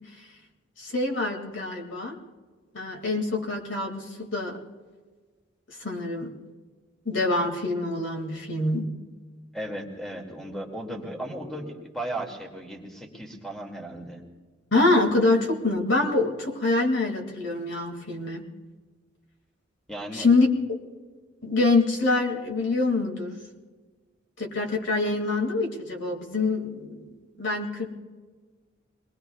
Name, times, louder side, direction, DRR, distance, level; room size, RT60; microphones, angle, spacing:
voice 1, 0.8-2.2 2.7-4.6 5.8-6.3 7.0-8.9 14.7-18.5 20.1-20.5 21.4-23.4 24.4-27.9, left 2 dB, 70° left, 1 dB, 2.4 m, -25 dB
voice 2, 9.5-14.2 19.9-20.3, right 1 dB, ahead, 0 dB, 2.4 m, -36 dB
25.5 x 21.0 x 2.4 m, 1.4 s
head